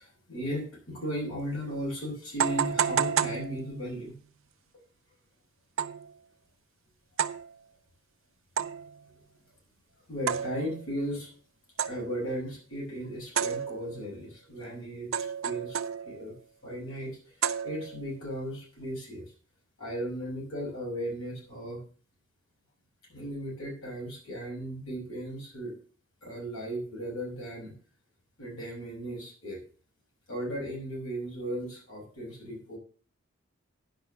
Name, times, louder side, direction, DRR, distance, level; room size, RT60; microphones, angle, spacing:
voice 1, 0.0-4.2 4.7-4.8 10.1-11.3 11.8-15.8 16.1-16.3 16.6-17.3 17.6-19.3 19.8-21.8 23.1-25.7 26.2-27.7 28.4-29.6 30.3-32.8, equal, 75° left, -1 dB, 5.6 m, -36 dB
sound 1, 1.4-1.5 2.4-4.1 5.8-6.1 7.2-7.5 8.6-9.0 10.3-10.9 11.8-12.2 13.4-14.1 15.1-16.3 17.4-18.1, right 8 dB, 75° right, 0.7 m, -31 dB
10.5 x 5.6 x 6.9 m, 0.41 s
head